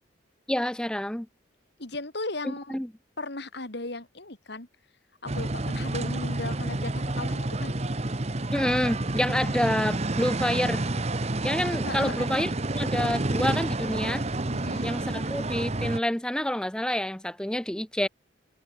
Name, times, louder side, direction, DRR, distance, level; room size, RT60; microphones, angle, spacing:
voice 1, 0.5-1.3 2.5-2.9 8.5-10.9 11.4-14.2 14.8-18.1, left 1 dB, 5° left, 0.5 m, -28 dB
voice 2, 1.8-2.8 3.2-4.7 5.2-7.7 11.8-12.3 14.5-14.9, left 2 dB, 55° left, 2.5 m, -36 dB
sound 1, 5.3-16.0, right 2 dB, 35° right, 1.1 m, -29 dB
head